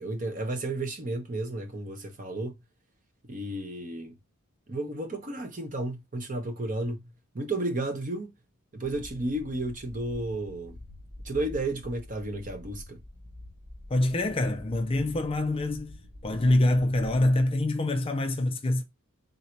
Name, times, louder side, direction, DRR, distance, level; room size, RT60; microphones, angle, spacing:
voice 1, 0.0-2.6 3.3-4.1 4.7-7.1 7.3-8.3 8.7-10.8 11.2-13.0, right 2 dB, 35° right, 0.9 m, -32 dB
sound 1, 8.8-17.4, left 1 dB, 55° right, 1.5 m, -46 dB
voice 2, 13.9-18.8, left 1 dB, 25° left, 0.4 m, -25 dB
3.9 x 2.7 x 4.4 m
head